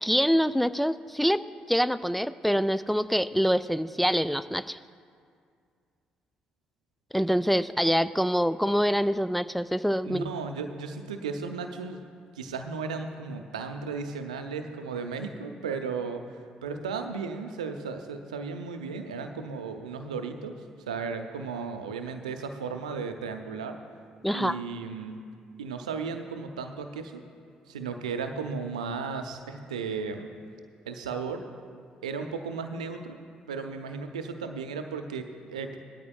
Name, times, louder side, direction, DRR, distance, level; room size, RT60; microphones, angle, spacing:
voice 1, 0.0-1.4 1.7-4.8 7.1-10.3 24.2-24.6, equal, ahead, 12 dB, 0.3 m, -25 dB
voice 2, 10.0-12.0 12.3-20.6 20.9-23.8 24.3-25.2 25.6-27.2 27.7-30.3 30.9-31.5 32.0-33.2 33.5-35.8, right 5 dB, 85° right, 7 dB, 0.6 m, -35 dB
18.0 x 12.5 x 2.3 m, 2.2 s
figure-of-eight pair, 45°, 4 cm